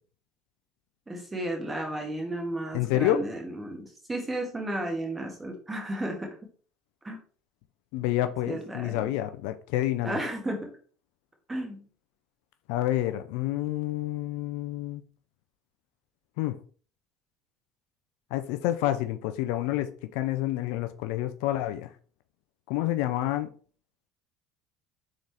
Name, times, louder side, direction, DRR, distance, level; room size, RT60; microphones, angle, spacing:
voice 1, 1.1-6.3 7.0-7.2 8.5-9.0 10.0-10.7 11.5-11.9, right 1 dB, 20° right, 1.7 m, -33 dB
voice 2, 2.7-3.2 7.9-10.2 12.7-15.0 16.4-16.6 18.3-21.9 22.7-23.5, left 14 dB, 75° left, 0.4 m, -28 dB
3.9 x 3.8 x 3.4 m
hypercardioid pair, 75°, 0 cm